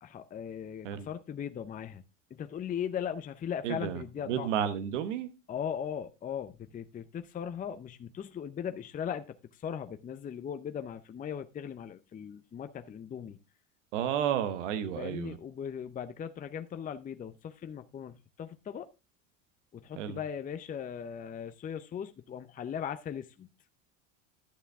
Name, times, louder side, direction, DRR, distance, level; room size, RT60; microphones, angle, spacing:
voice 1, 0.0-2.0 2.3-4.5 5.5-9.3 9.5-13.4 15.0-18.9 19.7-23.5, left 8 dB, 25° left, 0.6 m, -38 dB
voice 2, 3.6-5.3 13.9-15.3 20.0-20.2, right 9 dB, 85° right, 1.4 m, -32 dB
11.5 x 6.8 x 3.5 m
supercardioid pair, 100°, 36 cm